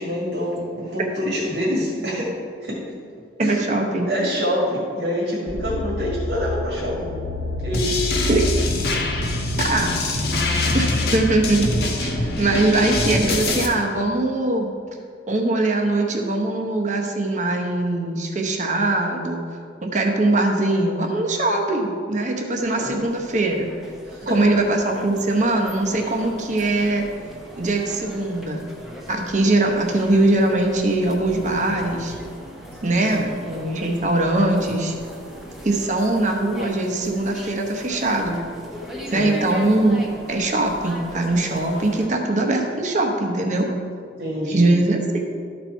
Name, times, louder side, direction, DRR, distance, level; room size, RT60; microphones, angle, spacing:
voice 1, 0.0-2.8 3.4-3.7 4.0-7.2 7.6-8.1 22.6-23.0 24.0-24.5 32.8-33.3 39.1-39.4 44.2-44.7, equal, 75° right, -5 dB, 1.9 m, -26 dB
voice 2, 3.4-4.1 8.3-8.4 9.6-10.0 10.7-11.7 12.0-14.7 15.3-19.4 19.8-23.7 24.3-27.0 27.6-28.7 29.1-32.1 32.8-34.9 35.6-38.4 39.1-40.0 40.3-43.7 44.5-45.2, right 2 dB, 40° right, 2 dB, 0.9 m, -21 dB
sound 1, 5.5-13.6, left 2 dB, 85° left, 0.8 m, -28 dB
sound 2, 7.7-13.7, left 2 dB, 55° left, 1.1 m, -25 dB
sound 3, 22.5-42.1, equal, ahead, 0.8 m, -39 dB
12.5 x 4.4 x 4.6 m, 2.3 s
head